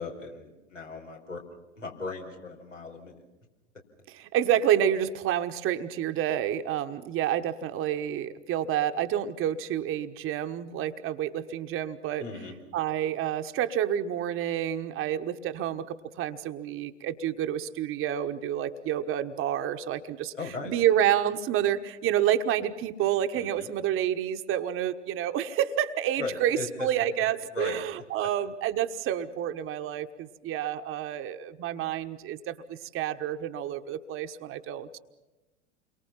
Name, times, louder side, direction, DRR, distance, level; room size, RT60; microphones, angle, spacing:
voice 1, 0.0-1.4 1.8-3.2 12.2-12.5 20.3-20.7 23.3-23.7 26.2-26.9 27.5-27.8, left 4 dB, 85° left, -1 dB, 4.9 m, -37 dB
voice 2, 4.1-12.2 12.7-20.3 20.6-35.0, right 10 dB, 35° right, 8 dB, 1.4 m, -29 dB
29.5 x 23.5 x 5.8 m, 1.1 s
figure-of-eight pair, 85°, 36 cm